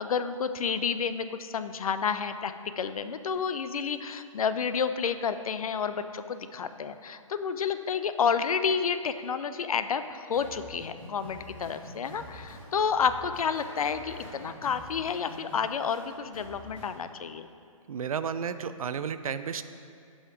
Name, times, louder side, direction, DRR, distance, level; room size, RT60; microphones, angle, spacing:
voice 1, 0.0-17.5, left 6 dB, 85° left, 11 dB, 0.4 m, -30 dB
sound 1, 10.3-17.0, left 1 dB, 10° left, 1.8 m, -46 dB
voice 2, 17.9-19.6, right 7 dB, 85° right, 12 dB, 0.4 m, -32 dB
5.6 x 5.6 x 4.9 m, 2.4 s
hypercardioid pair, 150°, 18 cm